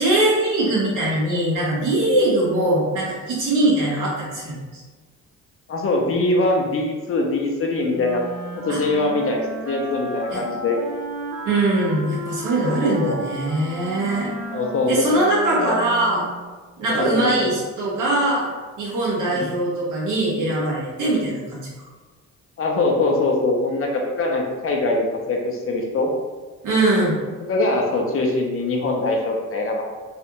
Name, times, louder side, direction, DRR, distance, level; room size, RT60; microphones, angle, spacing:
voice 1, 0.0-4.8 8.7-8.8 10.3-10.4 11.4-14.3 14.9-16.2 16.8-18.5 18.8-21.7 26.6-27.2, right 2 dB, 80° right, -6 dB, 1.3 m, -21 dB
voice 2, 5.7-8.2 8.6-10.8 12.6-13.2 14.5-15.1 15.6-15.8 16.9-17.5 19.3-19.5 22.6-26.1 27.5-29.8, left 2 dB, 45° left, 1 dB, 0.7 m, -23 dB
Wind instrument woodwind instrument, 7.9-16.6, right 2 dB, 55° right, 0.6 m, -34 dB
3.2 x 2.4 x 2.9 m, 1.3 s
cardioid pair, 90°, 30 cm